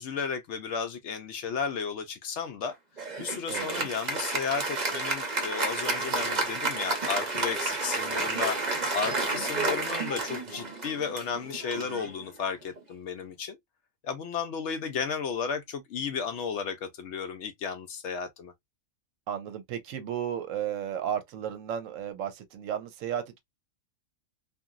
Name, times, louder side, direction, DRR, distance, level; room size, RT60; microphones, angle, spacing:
voice 1, 0.0-2.7 3.2-8.6 8.9-13.6 14.0-18.5, left 6 dB, 65° left, 0.8 m, -33 dB
Applause, 3.0-12.8, right 3 dB, 40° right, 0.8 m, -31 dB
voice 2, 3.5-3.9 11.8-12.1 19.3-23.4, right 9 dB, 75° right, 0.9 m, -34 dB
2.9 x 2.5 x 2.4 m
omnidirectional pair, 1.4 m